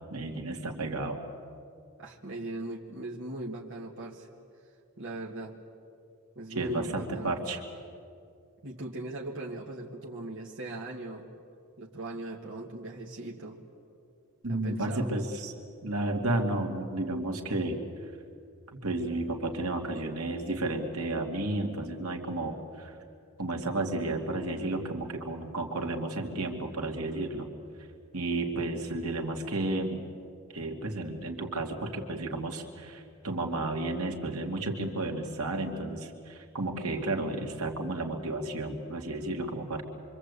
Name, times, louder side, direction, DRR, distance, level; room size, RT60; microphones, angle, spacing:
voice 1, 0.1-1.2 6.5-7.6 14.4-15.5 15.8-17.8 18.7-23.0 23.4-27.5 28.1-30.0 30.5-39.8, right 2 dB, 75° right, 2 dB, 2.5 m, -32 dB
voice 2, 2.0-4.3 4.6-5.6 6.4-7.4 8.6-11.3 11.8-13.6 14.5-15.1, right 2 dB, 55° right, -2 dB, 2.2 m, -39 dB
26.5 x 25.0 x 8.4 m, 2.4 s
head